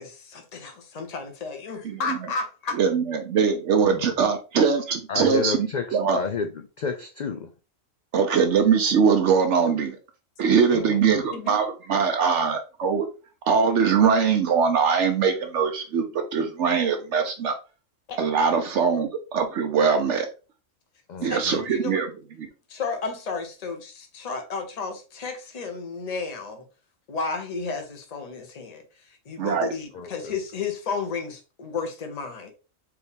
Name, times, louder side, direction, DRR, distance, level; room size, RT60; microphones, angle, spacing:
voice 1, 0.0-2.8 11.3-11.6 18.1-18.2 21.3-22.0 22.7-26.6 27.1-32.5, left 4 dB, 35° left, 0.8 m, -33 dB
voice 2, 1.8-2.2 2.8-6.2 8.1-10.0 10.4-13.1 13.5-17.5 18.2-20.3 21.2-22.1 29.4-29.7, right 6 dB, 70° right, 0.9 m, -22 dB
voice 3, 5.1-7.5 10.7-11.2 21.1-21.6 29.9-30.3, left 5 dB, 85° left, 0.4 m, -31 dB
4.6 x 2.6 x 3.4 m
omnidirectional pair, 1.3 m